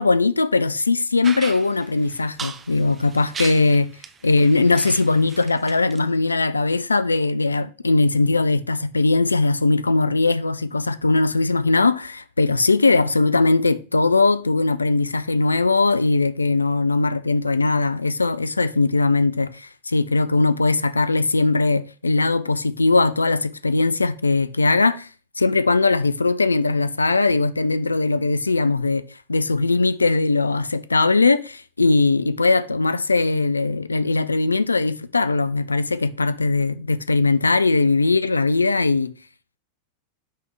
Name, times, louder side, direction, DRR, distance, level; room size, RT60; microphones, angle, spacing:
voice 1, 0.0-3.9 4.2-25.1 25.4-39.1, left 3 dB, 80° left, 0.4 m, -20 dB
sound 1, 1.2-6.0, right 6 dB, 20° right, 0.6 m, -37 dB
9.0 x 3.5 x 3.1 m
figure-of-eight pair, 90°, 0 cm